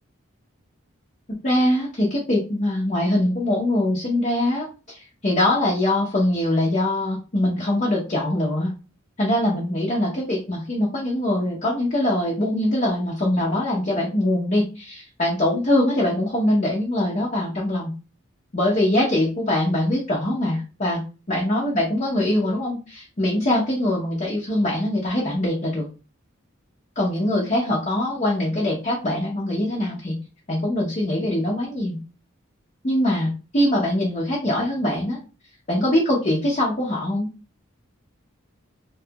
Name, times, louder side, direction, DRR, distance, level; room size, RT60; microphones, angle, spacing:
voice 1, 1.3-8.7 9.2-17.9 18.5-21.0 21.3-25.8 27.0-30.1 30.5-32.0 32.8-35.2 35.7-37.3, left 1 dB, 35° left, -5 dB, 0.7 m, -23 dB
3.0 x 2.3 x 2.8 m, 0.32 s
head